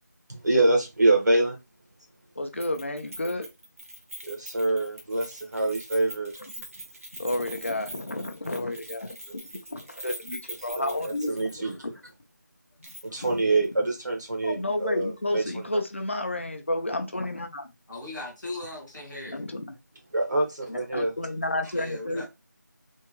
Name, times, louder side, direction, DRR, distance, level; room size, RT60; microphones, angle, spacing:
voice 1, 0.3-1.6 4.2-6.3 10.8-11.7 13.0-15.4 20.1-21.1, right 2 dB, 70° right, 1.4 m, -25 dB
voice 2, 2.4-3.5 7.1-9.2 9.7-11.9 13.2-13.4 14.4-17.7 19.3-19.7 20.7-22.3, left 1 dB, 40° left, 0.5 m, -31 dB
Keys jangling, 2.6-11.8 12.1-12.2 12.8-13.3 13.6-13.7, right 1 dB, 50° right, 0.9 m, -43 dB
voice 3, 17.9-19.5 21.7-22.3, left 2 dB, 5° left, 0.7 m, -38 dB
3.5 x 2.3 x 3.1 m
figure-of-eight pair, 170°, 10 cm